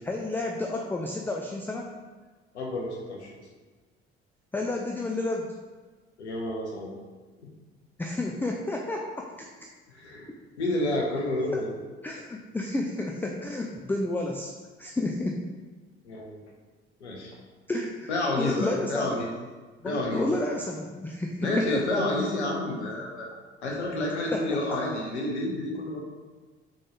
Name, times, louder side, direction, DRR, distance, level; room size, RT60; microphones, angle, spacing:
voice 1, 0.0-1.9 4.5-5.5 8.0-9.5 10.3-10.4 11.5-11.6 12.0-14.5 14.8-15.4 17.7-18.1 18.4-19.2 19.8-22.0 24.3-24.6, left 2 dB, 5° left, 1 dB, 0.3 m, -31 dB
voice 2, 2.5-3.3 6.2-6.9 9.9-10.3 10.6-11.8 16.0-16.4 17.0-17.4 18.1-19.3 19.8-20.2 21.4-23.3 23.6-26.0, left 1 dB, 85° left, -1 dB, 0.7 m, -29 dB
3.7 x 3.7 x 3.2 m, 1.4 s
figure-of-eight pair, 50°, 33 cm